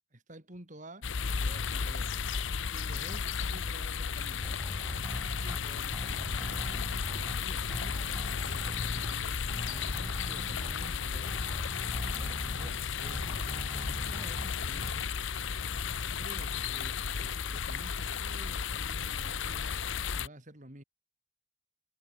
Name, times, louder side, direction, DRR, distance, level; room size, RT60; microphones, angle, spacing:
voice 1, 0.1-2.1 2.7-4.5 5.3-8.0 8.5-11.4 11.8-13.5 13.9-15.1 16.0-19.8 20.1-20.8, right 1 dB, 40° right, 4.3 m, -51 dB
sound 1, 1.0-20.3, left 6 dB, 70° left, 0.8 m, -34 dB
sound 2, 4.4-5.6 5.9-7.4 7.7-9.1 9.5-10.9 11.3-12.7 13.0-14.5 14.8-14.9, equal, 10° right, 4.1 m, -42 dB
head